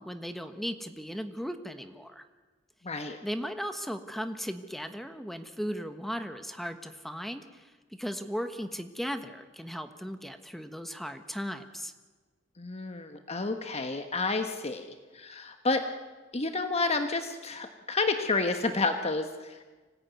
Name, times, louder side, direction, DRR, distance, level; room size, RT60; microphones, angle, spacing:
voice 1, 0.0-2.2 3.2-11.9, equal, ahead, 8 dB, 1.3 m, -37 dB
voice 2, 2.8-3.2 12.6-15.8 16.3-19.7, left 3 dB, 35° left, 6 dB, 1.3 m, -30 dB
25.5 x 18.0 x 9.4 m, 1.3 s
head